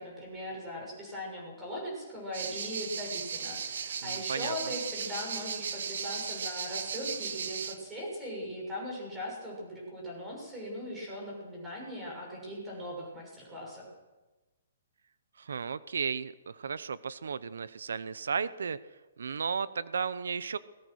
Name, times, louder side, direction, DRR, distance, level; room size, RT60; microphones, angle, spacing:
voice 1, 0.0-13.9, equal, 10° right, -2 dB, 6.8 m, -39 dB
sound 1, 2.3-7.7, right 6 dB, 60° right, 2.1 m, -36 dB
voice 2, 4.0-4.5 15.4-18.8 19.2-20.6, right 6 dB, 90° right, 16 dB, 0.9 m, -34 dB
23.0 x 21.0 x 6.5 m, 1.1 s
hypercardioid pair, 180°, 0 cm